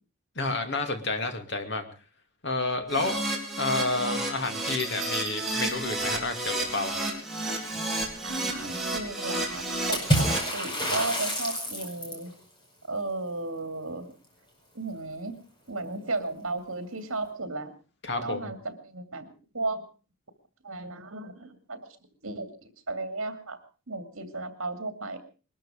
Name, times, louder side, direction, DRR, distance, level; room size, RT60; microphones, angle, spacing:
voice 1, 0.4-1.9 2.4-3.2 3.6-6.9 18.0-18.5, left 3 dB, 50° left, 6 dB, 2.6 m, -30 dB
Keyboard (musical), 2.9-10.4, right 2 dB, ahead, 4.2 m, -31 dB
sound 1, 4.4-6.4 8.0-8.3, right 5 dB, 45° right, 5.7 m, -40 dB
voice 2, 8.2-10.3 10.5-12.3 12.9-14.1 14.7-15.4 15.7-17.7 18.2-19.3 19.5-19.8 20.6-21.9 22.2-23.6 23.9-25.2, right 2 dB, 65° right, 9 dB, 2.5 m, -34 dB
Water / Splash splatter, 9.9-12.3, equal, 20° left, 5.2 m, -27 dB
21.5 x 13.0 x 5.0 m, 0.37 s
head